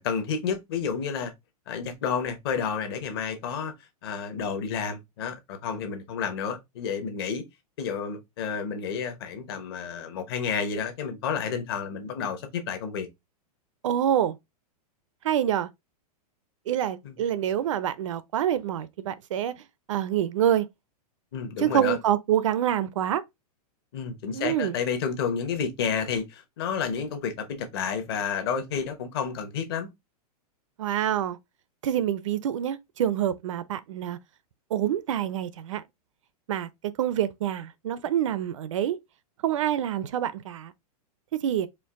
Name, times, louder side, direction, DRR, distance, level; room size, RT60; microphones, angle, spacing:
voice 1, 0.0-1.3 1.7-3.7 4.0-7.4 7.8-13.1 17.0-17.2 21.3-22.0 23.9-29.9, left 6 dB, 40° left, 0.9 m, -30 dB
voice 2, 13.8-14.3 15.2-15.7 16.7-19.5 19.9-20.7 21.6-23.2 24.3-24.8 30.8-31.4 31.8-34.2 34.7-35.8 36.5-39.0 39.4-40.7 41.3-41.7, right 10 dB, 55° right, 0.5 m, -26 dB
4.5 x 2.5 x 3.5 m
supercardioid pair, 175°, 20 cm